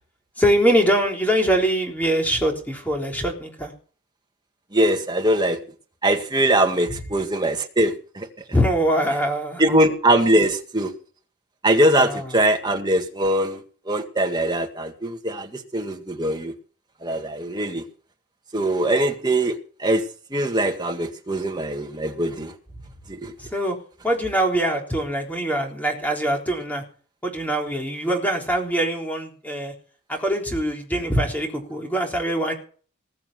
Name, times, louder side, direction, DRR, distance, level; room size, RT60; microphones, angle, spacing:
voice 1, 0.4-3.7 8.5-9.8 11.9-12.3 23.4-23.8 24.0-26.8 27.2-29.7 30.1-32.5, right 1 dB, 10° left, 0 dB, 3.6 m, -23 dB
voice 2, 4.7-5.6 6.0-8.3 9.6-10.9 11.6-13.6 13.8-16.5 17.0-17.8 18.5-20.0 20.3-22.5 23.1-23.3, right 1 dB, 20° right, 3 dB, 1.8 m, -22 dB
20.5 x 7.4 x 6.1 m, 0.42 s
head